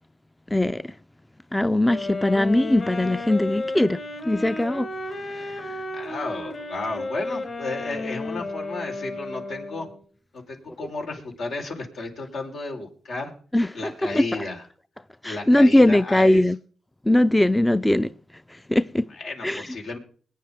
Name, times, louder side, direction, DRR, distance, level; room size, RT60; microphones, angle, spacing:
voice 1, 0.5-0.8 1.5-4.0 4.2-4.9 5.3-5.7 13.5-14.2 15.2-16.6 17.1-18.1 18.7-19.0 19.4-19.7, left 1 dB, 10° left, 0.5 m, -20 dB
sound 1, 1.8-10.0, left 2 dB, 50° left, 4.1 m, -33 dB
voice 2, 5.9-9.9 10.3-13.3 13.7-14.6 15.2-16.4 19.1-20.0, left 3 dB, 80° left, 4.0 m, -33 dB
21.5 x 9.5 x 3.5 m
cardioid pair, 60°, 0 cm